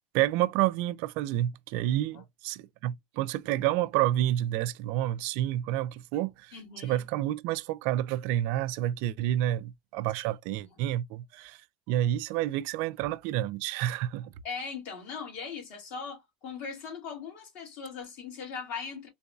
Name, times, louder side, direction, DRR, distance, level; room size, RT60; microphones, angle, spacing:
voice 1, 0.1-11.6 11.9-14.3, right 13 dB, 60° right, 0.4 m, -29 dB
voice 2, 6.5-7.0 14.4-19.1, left 5 dB, 55° left, 2.3 m, -39 dB
3.9 x 2.6 x 2.3 m
supercardioid pair, 125°, 3 cm